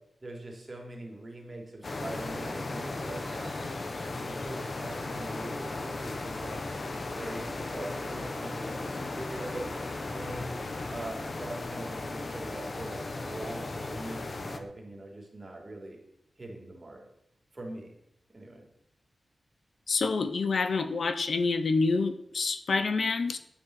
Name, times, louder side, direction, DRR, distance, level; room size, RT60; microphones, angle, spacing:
voice 1, 0.2-3.7 4.1-6.6 7.0-9.8 10.1-10.5 10.9-16.0 16.4-17.0 17.5-17.9 18.3-18.7, right 2 dB, 25° right, 1 dB, 3.7 m, -42 dB
sound 1, 1.8-14.6, left 2 dB, 40° left, 1.5 m, -36 dB
voice 2, 19.9-23.4, left 4 dB, 60° left, 11 dB, 1.0 m, -27 dB
11.5 x 9.6 x 8.4 m, 0.79 s
wide cardioid pair, 145°, 0 cm